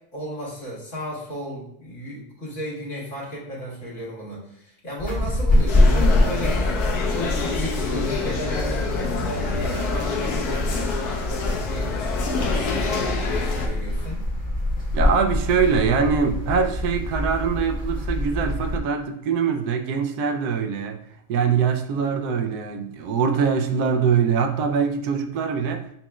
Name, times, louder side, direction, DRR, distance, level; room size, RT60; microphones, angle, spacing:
voice 1, 0.1-6.7 7.1-14.2, equal, 50° left, -6 dB, 2.1 m, -34 dB
sound 1, 5.0-18.8, left 1 dB, 5° left, 1.3 m, -25 dB
sound 2, 5.7-13.7, left 4 dB, 75° left, 1.3 m, -27 dB
voice 2, 14.9-21.0 21.3-25.9, right 6 dB, 85° right, 6 dB, 1.1 m, -23 dB
7.2 x 3.0 x 2.3 m, 0.75 s
omnidirectional pair, 1.7 m